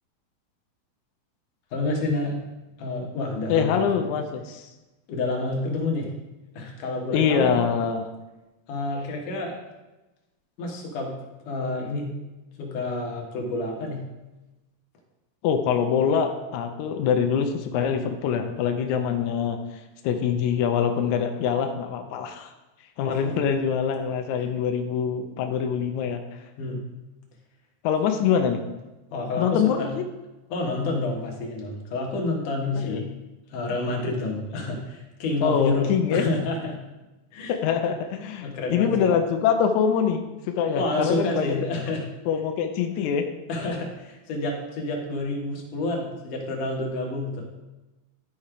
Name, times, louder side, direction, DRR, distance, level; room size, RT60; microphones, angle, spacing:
voice 1, 1.7-2.4 2.8-4.0 5.1-6.1 6.5-7.6 8.7-9.5 10.6-11.1 11.5-12.2 12.6-14.0 23.0-23.4 26.6-26.8 29.1-29.9 30.5-33.1 33.5-36.8 37.3-37.6 38.4-39.1 40.7-42.0 43.5-47.6, left 2 dB, 65° left, 0 dB, 2.8 m, -29 dB
voice 2, 3.5-4.7 7.1-8.0 15.4-19.6 20.0-22.5 23.0-26.2 27.8-28.6 29.4-30.0 32.8-33.0 35.4-36.3 37.5-41.6 42.3-43.3, left 7 dB, 80° left, 5 dB, 1.7 m, -24 dB
12.0 x 4.3 x 4.9 m, 1.1 s
omnidirectional pair, 4.2 m